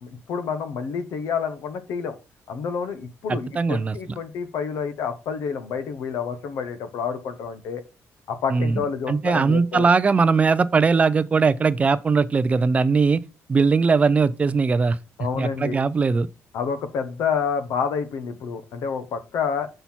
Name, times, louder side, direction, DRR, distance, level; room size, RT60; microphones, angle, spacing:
voice 1, 0.0-2.1 2.5-7.8 8.3-9.9 15.2-15.8 16.5-19.7, left 6 dB, 85° left, 1.1 m, -28 dB
voice 2, 3.3-4.2 8.5-13.2 13.5-15.0 15.4-16.3, right 4 dB, 25° right, 0.4 m, -20 dB
5.7 x 5.5 x 4.5 m
cardioid pair, 130°, 5 cm